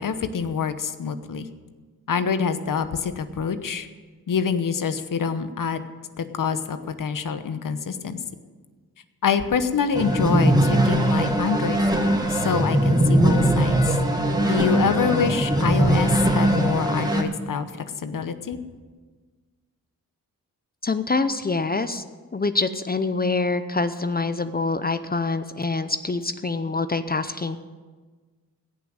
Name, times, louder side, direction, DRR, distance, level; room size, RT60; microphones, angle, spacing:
voice 1, 0.0-1.5 2.1-3.9 4.3-5.8 6.2-8.2 9.2-14.0 14.5-17.7 18.0-18.6, left 6 dB, 60° left, 11 dB, 1.0 m, -26 dB
sound 1, 9.9-17.2, right 1 dB, 10° right, 2.0 m, -20 dB
voice 2, 20.8-22.0 22.3-27.6, left 3 dB, 25° left, 11 dB, 0.7 m, -25 dB
17.0 x 6.0 x 8.9 m, 1.4 s
cardioid pair, 65°, 36 cm